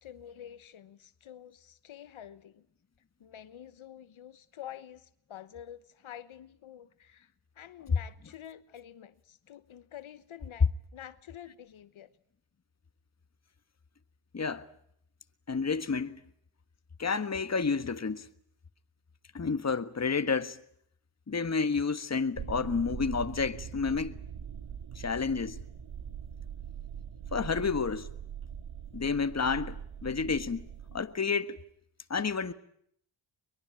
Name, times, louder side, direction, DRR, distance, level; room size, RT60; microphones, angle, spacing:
voice 1, 0.0-2.7 3.2-12.1, left 10 dB, 70° left, 1.2 m, -48 dB
voice 2, 14.3-14.7 15.5-16.2 17.0-18.3 19.3-20.6 21.3-24.2 24.9-25.6 27.3-28.1 28.9-29.8 30.0-31.6 32.1-32.5, left 5 dB, 30° left, 1.5 m, -30 dB
sound 1, 22.4-31.0, right 8 dB, 70° right, 2.0 m, -42 dB
23.0 x 22.0 x 8.9 m
cardioid pair, 70°, 49 cm